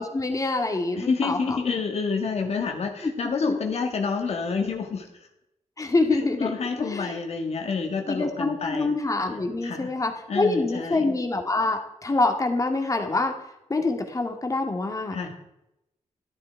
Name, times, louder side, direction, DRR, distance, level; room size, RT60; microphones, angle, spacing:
voice 1, 0.0-1.6 3.0-3.1 3.4-3.6 5.8-7.2 8.1-13.3 13.7-15.2, left 2 dB, 30° left, 5 dB, 2.1 m, -26 dB
voice 2, 1.0-5.1 6.4-8.9 9.6-9.9 10.3-11.1 15.1-15.3, left 5 dB, 65° left, 3 dB, 1.8 m, -28 dB
13.0 x 11.5 x 4.7 m, 0.86 s
wide cardioid pair, 105°, 12 cm